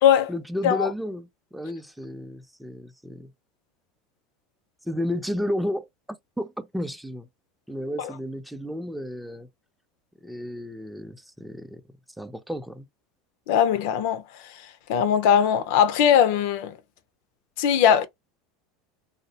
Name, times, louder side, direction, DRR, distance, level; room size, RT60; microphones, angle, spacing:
voice 1, 0.3-3.3 4.8-5.9 6.4-7.3 7.7-9.5 10.2-11.8 12.2-12.9, left 1 dB, 5° right, 0.5 m, -32 dB
voice 2, 13.5-14.2 14.9-16.7 17.6-18.1, left 9 dB, 70° left, 0.4 m, -20 dB
2.5 x 2.0 x 2.8 m
hypercardioid pair, 95°, 0 cm